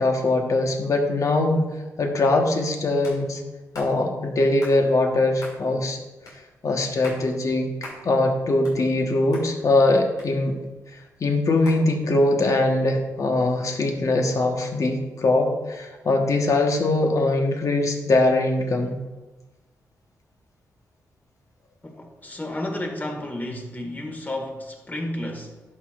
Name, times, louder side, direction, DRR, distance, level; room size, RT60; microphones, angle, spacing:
voice 1, 0.0-3.4 3.7-6.0 6.6-7.7 8.0-10.6 11.2-18.9, left 2 dB, 60° left, 3 dB, 1.2 m, -22 dB
sound 1, 3.0-3.2 3.7-3.9 4.6-4.8 5.4-5.6 6.3-6.4 6.9-7.2 7.8-8.0 8.4-9.1 9.3-9.5 10.2-10.7 11.6-11.8, left 1 dB, 80° left, 2.7 m, -40 dB
voice 2, 21.8-25.6, left 1 dB, 25° left, 3 dB, 1.8 m, -32 dB
11.0 x 6.2 x 2.5 m, 1.1 s
supercardioid pair, 50°, 6 cm